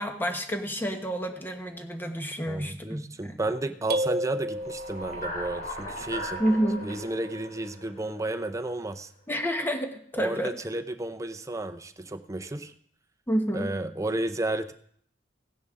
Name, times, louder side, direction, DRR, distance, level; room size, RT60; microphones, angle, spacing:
voice 1, 0.0-3.4 6.4-6.8 9.3-10.6 13.3-13.7, equal, 10° left, 5 dB, 1.2 m, -29 dB
voice 2, 2.5-6.4 6.8-9.1 10.2-12.7 13.5-14.7, right 2 dB, 20° right, 8 dB, 0.6 m, -32 dB
sound 1, 3.9-5.4, equal, 60° right, 0.9 m, -30 dB
sound 2, 4.5-8.8, equal, 50° left, 3.2 m, -38 dB
16.0 x 10.0 x 3.7 m, 0.64 s
head